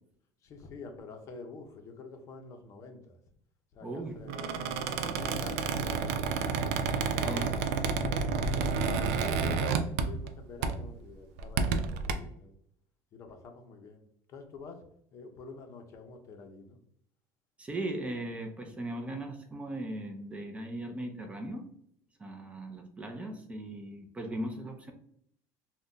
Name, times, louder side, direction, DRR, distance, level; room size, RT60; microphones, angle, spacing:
voice 1, 0.4-3.2 3.7-4.5 4.9-6.1 7.0-12.5 13.1-16.8, left 4 dB, 40° left, 5 dB, 0.6 m, -47 dB
voice 2, 3.8-4.2 7.2-7.5 17.6-21.6 22.2-24.9, right 1 dB, 15° right, 3 dB, 0.4 m, -38 dB
Squeak, 4.2-10.3 10.6-10.9 11.4-12.1, right 5 dB, 90° right, 0.4 m, -30 dB
2.5 x 2.1 x 3.7 m, 0.66 s
cardioid pair, 135°, 8 cm